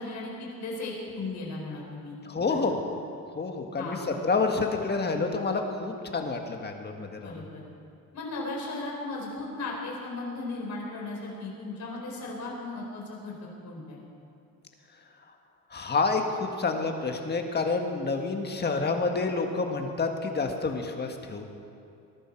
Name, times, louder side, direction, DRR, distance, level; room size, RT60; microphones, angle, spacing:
voice 1, 0.0-2.2 3.8-4.1 7.2-7.6 8.1-14.0, left 2 dB, 50° left, -2 dB, 4.5 m, -36 dB
voice 2, 2.2-2.8 3.3-7.4 15.7-21.4, left 4 dB, 30° left, 4 dB, 1.6 m, -28 dB
20.0 x 11.5 x 4.6 m, 2.6 s
cardioid pair, 115°, 35 cm